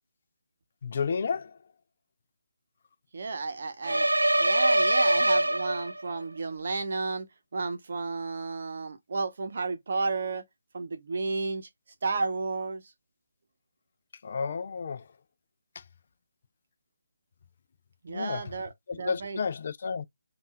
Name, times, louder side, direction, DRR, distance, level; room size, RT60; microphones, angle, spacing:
voice 1, 0.8-1.6 14.2-15.1 15.8-15.9 18.1-18.5 18.9-20.0, left 5 dB, 45° left, 0.4 m, -32 dB
voice 2, 3.1-4.1 4.4-7.3 7.5-10.4 10.7-11.7 12.0-12.8 18.0-19.4, right 3 dB, 50° right, 0.9 m, -32 dB
sound 1, 3.8-6.2, right 1 dB, 85° right, 0.3 m, -23 dB
5.3 x 2.5 x 2.2 m
figure-of-eight pair, 150°, 0 cm